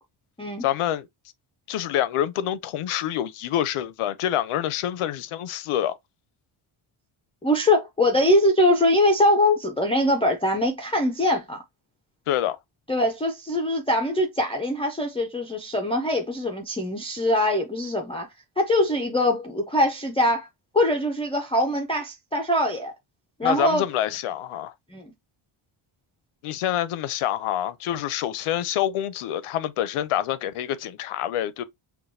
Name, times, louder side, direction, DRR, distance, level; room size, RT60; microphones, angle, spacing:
voice 1, 0.6-1.1 1.7-5.9 12.3-12.6 23.4-24.7 26.4-31.6, left 11 dB, 90° left, 0.6 m, -26 dB
voice 2, 7.4-11.6 12.9-18.3 18.6-20.5 20.7-22.9 23.4-23.8 24.9-25.1, left 1 dB, 15° left, 0.3 m, -22 dB
5.9 x 2.2 x 2.5 m
wide cardioid pair, 170°, 49 cm